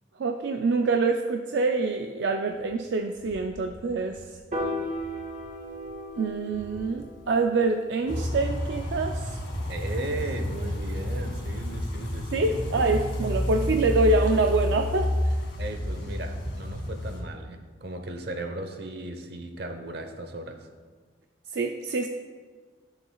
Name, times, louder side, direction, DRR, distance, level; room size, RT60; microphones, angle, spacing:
voice 1, 0.2-4.4 6.2-9.4 12.3-15.4 21.5-22.1, right 3 dB, 75° right, 5 dB, 0.4 m, -26 dB
sound 1, 2.5-7.0 7.3-12.0 12.3-12.9 13.1-17.0, equal, 25° right, 2.1 m, -50 dB
Piano, 4.5-10.8, equal, 45° right, 1.6 m, -38 dB
sound 2, 8.1-17.2, equal, 85° left, 2.0 m, -30 dB
voice 2, 9.7-12.5 12.9-13.3 15.6-20.6, right 2 dB, 60° right, 6 dB, 0.9 m, -36 dB
13.5 x 6.9 x 2.3 m, 1.5 s
head